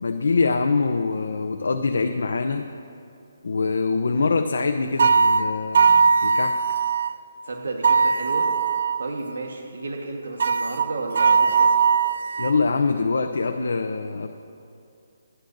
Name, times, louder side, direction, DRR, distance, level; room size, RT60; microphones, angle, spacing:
voice 1, 0.0-2.7 3.4-6.6 12.4-14.3, left 4 dB, 80° left, 6 dB, 0.6 m, -24 dB
sound 1, 5.0-7.1 7.8-9.1 10.4-12.6, right 5 dB, 55° right, 0.4 m, -19 dB
voice 2, 7.4-8.5 9.0-11.7, right 3 dB, 80° right, 1 dB, 1.4 m, -32 dB
28.0 x 10.0 x 2.6 m, 2.6 s
hypercardioid pair, 170°, 0 cm